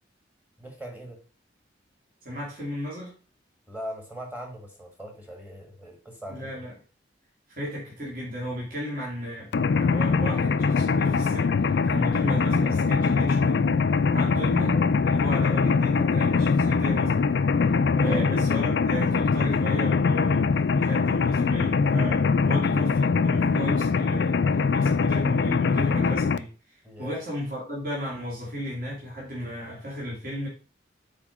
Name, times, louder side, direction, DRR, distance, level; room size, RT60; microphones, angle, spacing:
voice 1, 0.6-1.2 3.7-6.7 14.6-14.9 18.0-18.3 26.8-27.2, right 1 dB, 10° right, 1.6 m, -40 dB
voice 2, 2.2-3.2 6.3-6.7 7.5-9.5 9.8-13.6 14.1-14.8 15.1-17.3 17.9-20.5 20.7-30.5, equal, 45° right, 2.7 m, -34 dB
Mechanisms, 9.5-26.4, left 4 dB, 60° left, 0.4 m, -22 dB
7.3 x 4.5 x 5.1 m
head